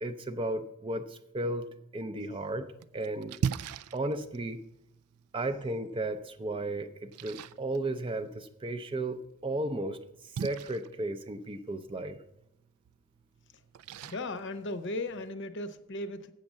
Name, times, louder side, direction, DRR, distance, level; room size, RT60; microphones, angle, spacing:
voice 1, 0.0-3.3 3.9-4.6 5.3-10.0 10.2-12.2, right 2 dB, 25° right, 10 dB, 0.4 m, -34 dB
Splash splatter, 2.3-15.3, right 7 dB, 85° right, 0.3 m, -42 dB
voice 2, 14.0-16.3, left 2 dB, 55° left, 10 dB, 0.7 m, -36 dB
8.0 x 6.4 x 7.2 m, 0.81 s
head